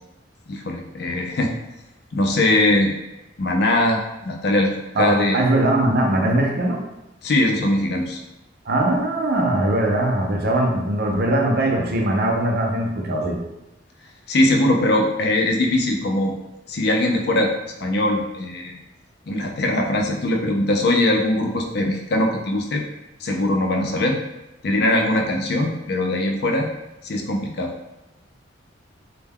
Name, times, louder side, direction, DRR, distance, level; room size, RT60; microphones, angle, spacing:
voice 1, 0.5-1.5 2.1-2.9 3.4-5.4 7.2-8.2 14.3-16.3 16.7-17.5 17.8-18.8 19.3-22.8 23.2-24.2 24.6-26.7 27.0-27.7, left 1 dB, 60° left, 2 dB, 0.4 m, -21 dB
voice 2, 4.9-6.8 8.7-13.4, right 1 dB, 55° right, 1 dB, 0.5 m, -21 dB
2.2 x 2.1 x 3.4 m, 0.95 s
head